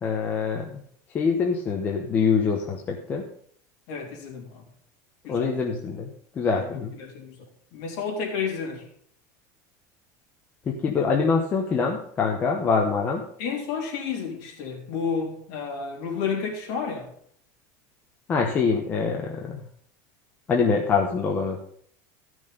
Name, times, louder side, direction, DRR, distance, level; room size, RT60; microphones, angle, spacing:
voice 1, 0.0-0.8 1.1-3.2 5.3-6.9 10.7-13.2 18.3-19.6 20.5-21.7, left 5 dB, 20° left, 0.9 m, -24 dB
voice 2, 3.9-4.6 5.2-5.6 6.5-7.4 7.7-8.8 13.4-17.1, left 6 dB, 50° left, 3.3 m, -31 dB
14.5 x 6.2 x 5.2 m
cardioid pair, 180°, 9 cm